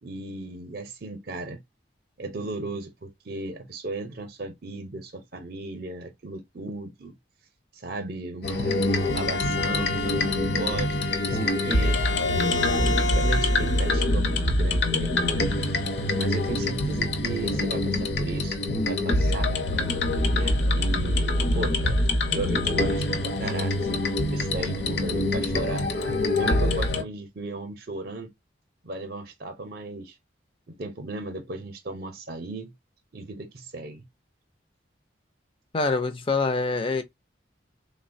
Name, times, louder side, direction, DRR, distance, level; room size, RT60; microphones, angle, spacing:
voice 1, 0.0-1.6 2.2-7.1 7.7-8.9 9.1-12.0 12.5-15.4 16.2-18.6 18.9-19.5 20.3-24.0 24.3-25.9 26.3-28.3 28.8-30.2 30.7-32.7 33.1-34.0, right 2 dB, 50° right, 0.6 m, -36 dB
sound 1, 8.4-27.0, left 2 dB, 60° left, 0.7 m, -25 dB
Bowed string instrument, 8.5-14.0, left 3 dB, 75° left, 1.0 m, -31 dB
voice 2, 35.7-37.0, left 3 dB, 30° left, 0.4 m, -25 dB
3.6 x 2.1 x 2.5 m
head